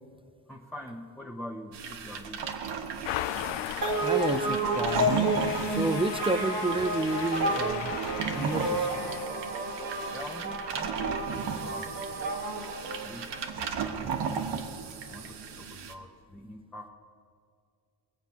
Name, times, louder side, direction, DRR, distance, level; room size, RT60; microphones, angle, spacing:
voice 1, 0.5-2.5 10.1-12.3 12.8-13.3 13.8-14.1 15.1-16.9, left 1 dB, ahead, -1 dB, 1.0 m, -44 dB
sound 1, 1.7-15.9, right 6 dB, 70° right, 1.3 m, -36 dB
sound 2, 3.0-9.3, left 15 dB, 80° left, 0.5 m, -38 dB
sound 3, 3.8-13.6, right 1 dB, 55° right, 1.7 m, -31 dB
voice 2, 4.0-8.0 8.3-8.9, right 2 dB, 15° right, 11 dB, 0.4 m, -30 dB
21.5 x 7.7 x 5.8 m, 2.3 s
cardioid pair, 90°, 43 cm